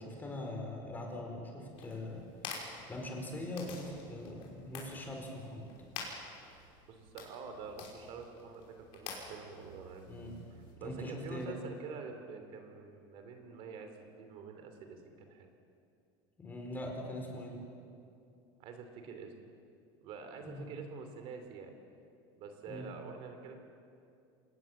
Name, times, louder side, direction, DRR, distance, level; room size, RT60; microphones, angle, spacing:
voice 1, 0.0-2.2 2.9-5.7 10.1-10.4 10.8-11.6 16.4-17.6 20.4-20.7 22.7-22.9, left 1 dB, 15° left, 1 dB, 4.5 m, -42 dB
sound 1, 1.7-10.7, left 4 dB, 60° left, 5.6 m, -48 dB
voice 2, 6.9-10.0 10.5-15.5 18.6-19.5 20.0-21.7 22.3-23.6, right 5 dB, 55° right, 6 dB, 2.9 m, -47 dB
27.0 x 19.0 x 7.3 m, 2.5 s
cardioid pair, 145°, 12 cm